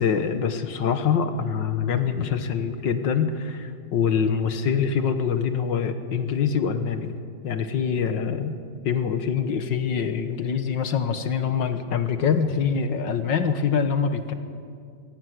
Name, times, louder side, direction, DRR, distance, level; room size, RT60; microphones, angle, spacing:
voice 1, 0.0-7.1 7.4-8.6 8.9-14.3, left 6 dB, 65° left, 9 dB, 1.9 m, -24 dB
22.0 x 16.5 x 9.5 m, 2.3 s
omnidirectional pair, 2.2 m